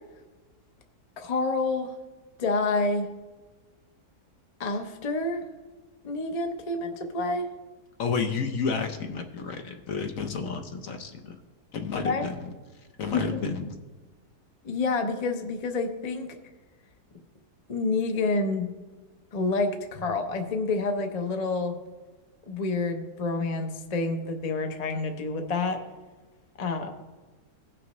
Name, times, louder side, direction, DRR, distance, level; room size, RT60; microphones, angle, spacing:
voice 1, 1.2-1.9 2.4-3.1 4.6-5.4 6.0-7.4 11.9-12.2 13.1-13.4 14.6-16.3 17.7-18.7 19.3-21.7 22.5-25.8 26.6-26.9, left 3 dB, 35° left, 5 dB, 0.7 m, -28 dB
voice 2, 8.0-11.4 11.7-12.3 13.0-13.6, left 5 dB, 60° left, 5 dB, 1.1 m, -31 dB
17.0 x 6.0 x 3.1 m, 1.2 s
omnidirectional pair, 1.7 m